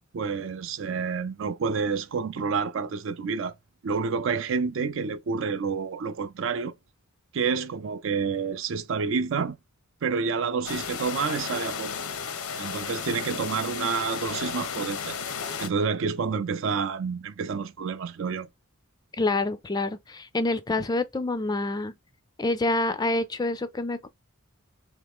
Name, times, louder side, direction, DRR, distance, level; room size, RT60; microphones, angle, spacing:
voice 1, 0.1-3.5 3.8-6.7 7.3-9.6 10.0-11.9 12.6-15.2 15.6-18.5, right 5 dB, 60° right, 0.4 m, -29 dB
sound 1, 10.6-15.7, left 6 dB, 85° left, 0.7 m, -34 dB
voice 2, 19.2-21.9 22.4-24.1, left 2 dB, 20° left, 0.4 m, -27 dB
3.5 x 3.1 x 3.5 m
head